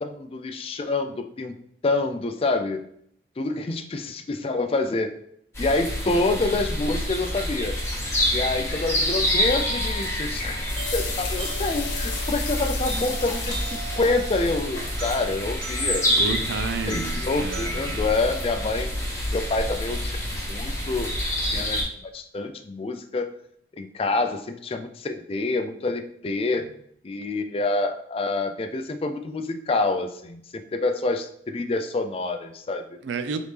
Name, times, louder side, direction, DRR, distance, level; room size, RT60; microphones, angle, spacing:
voice 1, 0.0-1.5 1.8-2.9 3.4-5.2 5.6-7.8 8.3-10.6 10.9-16.4 16.9-18.9 19.3-21.9 22.1-23.3 23.8-26.6 27.0-32.9, left 3 dB, 30° left, 7 dB, 0.3 m, -27 dB
sound 1, 5.5-21.8, equal, 15° left, 1.4 m, -28 dB
sound 2, 9.2-19.3, right 1 dB, 45° right, 1.5 m, -40 dB
sound 3, 10.6-15.1, left 5 dB, 75° left, 0.9 m, -36 dB
voice 2, 16.2-18.0 26.6-26.7 33.0-33.4, right 4 dB, 80° right, 9 dB, 0.4 m, -31 dB
4.0 x 3.4 x 3.3 m, 0.69 s
head